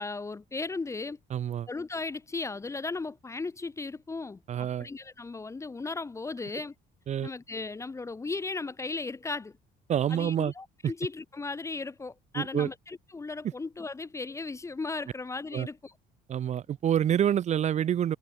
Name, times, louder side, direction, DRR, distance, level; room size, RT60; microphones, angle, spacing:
voice 1, 0.0-1.2 1.7-6.7 7.2-9.6 10.1-15.9, left 3 dB, 15° left, 0.6 m, -36 dB
voice 2, 1.3-1.7 4.5-4.9 7.1-7.3 9.9-10.5 12.3-12.7 15.5-15.7 16.3-18.2, right 10 dB, 45° right, 0.6 m, -27 dB
cardioid pair, 110°, 17 cm